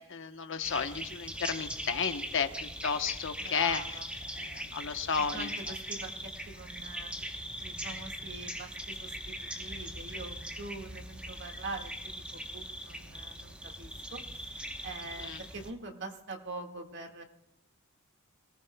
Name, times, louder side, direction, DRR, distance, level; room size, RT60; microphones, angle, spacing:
voice 1, 0.1-3.8 4.3-5.5 15.2-15.4, left 6 dB, 60° left, 7 dB, 1.1 m, -33 dB
sound 1, 0.6-15.7, equal, 5° right, 1.0 m, -41 dB
voice 2, 3.4-4.1 5.3-7.1 7.6-17.2, right 3 dB, 55° right, 3 dB, 1.9 m, -44 dB
27.5 x 19.0 x 2.3 m, 0.80 s
head